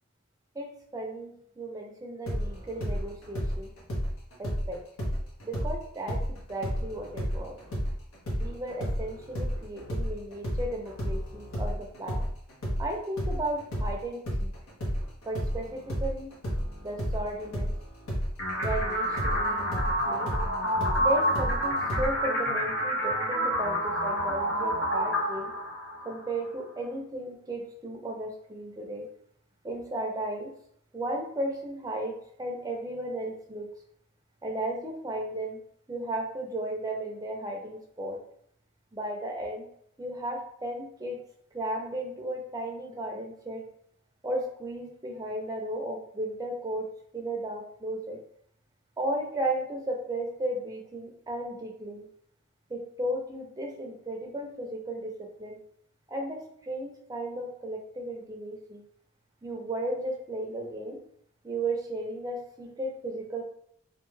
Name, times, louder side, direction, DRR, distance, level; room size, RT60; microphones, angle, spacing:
voice 1, 0.5-3.7 4.4-4.8 5.4-7.6 8.4-12.2 12.8-14.5 15.3-16.3 16.8-17.7 18.6-19.7 20.1-20.3 21.0-25.5 26.0-29.1 29.6-30.5 30.9-33.7 34.4-35.6 35.9-38.2 38.9-39.7 40.0-41.2 41.5-43.6 44.2-46.9 47.1-48.2 49.0-52.1 52.7-55.6 56.1-58.8 59.4-61.0 61.4-63.4, right 1 dB, 15° right, 0 dB, 0.4 m, -34 dB
sound 1, 2.3-5.8 6.1-13.9 14.2-22.1, equal, 90° left, 0.8 m, -31 dB
sound 2, 18.4-26.4, equal, 55° left, 1.0 m, -28 dB
2.5 x 2.2 x 3.1 m, 0.66 s
head